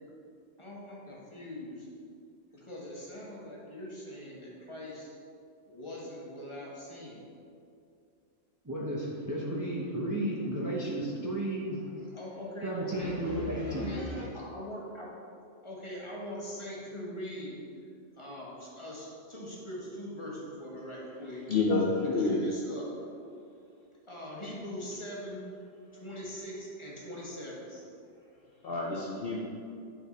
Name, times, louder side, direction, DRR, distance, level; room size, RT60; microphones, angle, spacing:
voice 1, 0.6-1.9 2.5-5.1 5.7-7.2 12.1-13.2 13.7-15.1 15.6-17.6 18.2-21.4 22.2-22.9 24.1-25.4 26.0-27.7, equal, 25° left, -5 dB, 1.3 m, -42 dB
voice 2, 8.6-11.8 12.6-13.9, right 1 dB, 20° right, -4 dB, 0.6 m, -33 dB
voice 3, 12.9-14.3 21.5-22.4 28.6-29.4, left 3 dB, 55° left, -3 dB, 0.8 m, -30 dB
8.9 x 4.1 x 4.1 m, 2.5 s
omnidirectional pair, 1.3 m